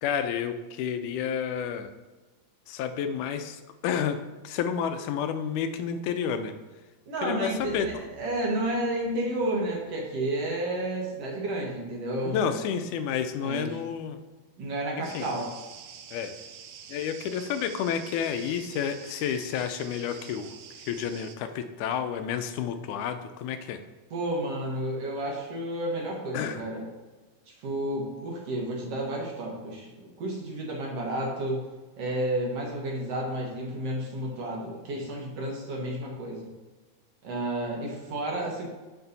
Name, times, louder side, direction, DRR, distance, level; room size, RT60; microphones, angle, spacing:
voice 1, 0.0-1.9 2.7-4.2 4.4-6.5 7.2-7.9 12.3-14.2 15.1-15.3 16.1-16.3 16.9-20.5 20.9-23.8 26.3-26.6, left 8 dB, 85° left, 9 dB, 2.0 m, -30 dB
voice 2, 7.1-12.6 13.4-13.8 14.6-15.5 24.1-26.8 27.6-31.7 32.0-36.5 37.2-38.7, right 1 dB, 60° right, -2 dB, 2.1 m, -31 dB
sound 1, 7.2-11.2 11.5-11.6, left 1 dB, 25° right, 2.1 m, -51 dB
sound 2, 15.0-21.4, right 8 dB, 75° right, 1.7 m, -47 dB
6.9 x 6.2 x 4.0 m, 1.2 s
omnidirectional pair, 3.5 m